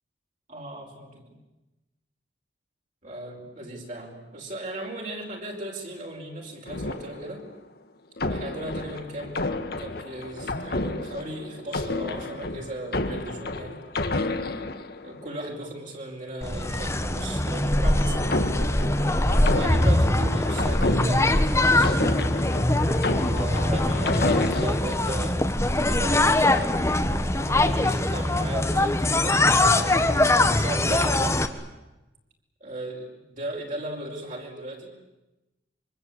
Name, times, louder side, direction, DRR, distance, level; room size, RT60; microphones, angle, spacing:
voice 1, 0.5-1.4 3.0-7.5 8.3-13.8 15.0-18.2 19.5-22.4 23.0-25.4 25.8-30.3 30.5-31.4 32.6-34.9, right 1 dB, 45° right, -1 dB, 5.0 m, -37 dB
sound 1, 6.7-7.6 8.2-15.4 17.3-25.0 25.6-26.4, left 2 dB, 55° left, 1.7 m, -31 dB
sound 2, 16.4-31.5, left 1 dB, 15° left, 1.4 m, -22 dB
25.5 x 24.5 x 8.6 m, 1.0 s
head